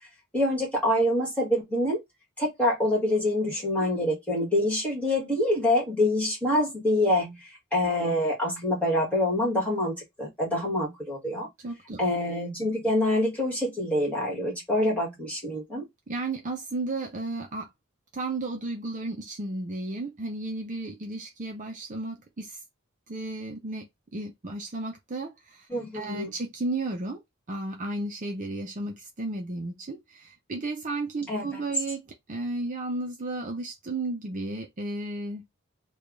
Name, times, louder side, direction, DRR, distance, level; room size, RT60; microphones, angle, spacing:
voice 1, 0.3-2.0 2.4-11.5 12.0-15.8 25.7-26.3 31.3-31.6, left 1 dB, 5° left, 1.7 m, -26 dB
voice 2, 11.6-12.0 16.1-17.7 18.1-22.6 23.1-25.7 25.9-27.2 27.5-35.5, right 2 dB, 35° right, 0.6 m, -33 dB
3.4 x 2.3 x 3.7 m
head